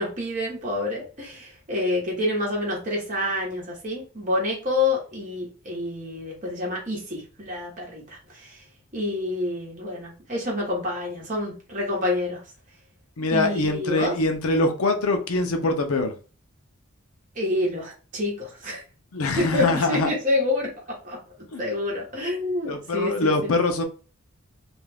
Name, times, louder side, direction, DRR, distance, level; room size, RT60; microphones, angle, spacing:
voice 1, 0.0-8.6 8.9-12.4 13.3-14.1 17.4-18.8 19.4-20.7 21.0-21.2 21.6-23.5, left 2 dB, 35° right, 1.0 m, -27 dB
voice 2, 13.2-16.2 19.1-20.1 21.5-21.6 22.7-23.8, left 2 dB, 85° left, 0.6 m, -23 dB
2.5 x 2.3 x 3.3 m
head